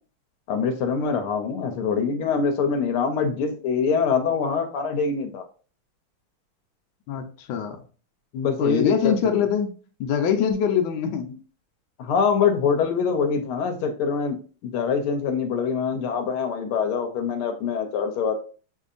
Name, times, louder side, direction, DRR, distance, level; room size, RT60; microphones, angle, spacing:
voice 1, 0.5-5.4 8.3-9.4 12.0-18.3, left 5 dB, 90° left, 5 dB, 1.6 m, -24 dB
voice 2, 7.1-7.8 8.6-9.7 10.0-11.3, left 7 dB, 70° left, 4 dB, 1.4 m, -23 dB
6.9 x 2.7 x 2.5 m, 0.38 s
omnidirectional pair, 2.3 m